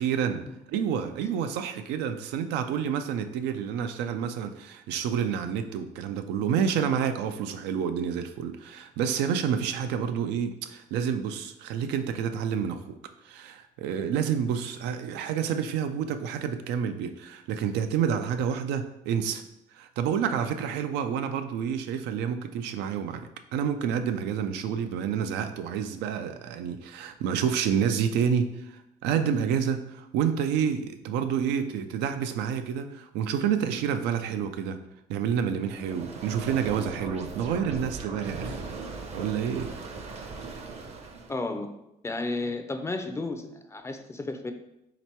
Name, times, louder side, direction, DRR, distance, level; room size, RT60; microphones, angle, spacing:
voice 1, 0.0-13.0 13.2-19.4 19.7-34.8 35.1-38.6 39.1-39.7, right 8 dB, 90° right, 8 dB, 0.4 m, -29 dB
sound 1, 35.6-41.4, right 4 dB, 40° right, 0.6 m, -38 dB
voice 2, 41.3-41.7 42.0-44.5, left 2 dB, 15° left, 7 dB, 0.4 m, -33 dB
3.3 x 2.9 x 4.4 m, 0.84 s
cardioid pair, 110°, 17 cm